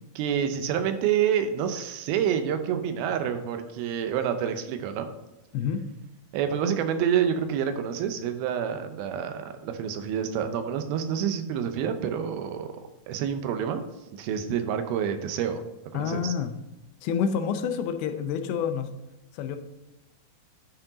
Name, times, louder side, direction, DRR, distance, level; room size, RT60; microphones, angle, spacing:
voice 1, 0.2-5.1 6.3-12.7 13.1-13.8 14.1-15.6 15.9-16.3, right 8 dB, 85° right, 8 dB, 2.6 m, -28 dB
voice 2, 15.9-16.5 17.0-18.9 19.3-19.6, left 7 dB, 90° left, 7 dB, 2.5 m, -28 dB
9.7 x 4.5 x 3.9 m, 0.99 s
omnidirectional pair, 4.2 m